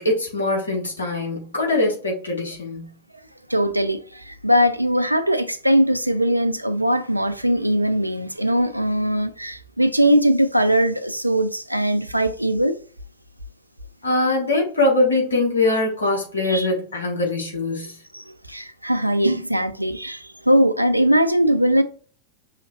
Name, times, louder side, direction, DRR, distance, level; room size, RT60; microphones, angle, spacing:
voice 1, 0.0-2.9 14.0-18.0, left 2 dB, 75° left, 1.7 m, -22 dB
voice 2, 3.5-12.8 16.4-16.7 18.1-21.8, equal, 85° right, 0.4 m, -20 dB
5.6 x 3.1 x 2.6 m
figure-of-eight pair, 90°, 0 cm